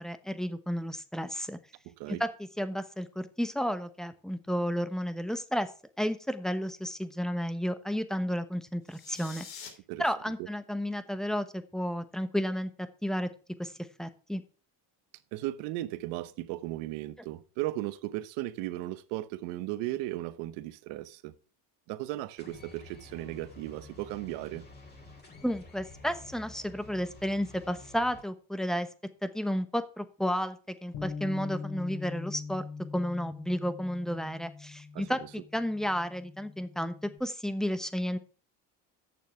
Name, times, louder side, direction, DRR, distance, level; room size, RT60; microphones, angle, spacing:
voice 1, 0.0-1.6 2.2-2.3 2.6-5.7 6.0-9.5 10.0-13.3 13.6-13.7 14.0-14.4 25.4-28.9 29.2-32.6 32.9-38.2, equal, ahead, 1.0 m, -32 dB
voice 2, 1.9-2.2 9.9-10.0 10.4-10.5 15.3-21.3 21.9-24.7 34.9-35.1, right 16 dB, 85° right, 1.0 m, -36 dB
sound 1, 8.8-9.7, left 7 dB, 80° left, 3.4 m, -45 dB
sound 2, 22.4-28.2, left 2 dB, 25° left, 2.9 m, -50 dB
Bass guitar, 30.9-37.2, left 5 dB, 65° left, 3.3 m, -42 dB
8.9 x 6.9 x 5.7 m
cardioid pair, 115°, 42 cm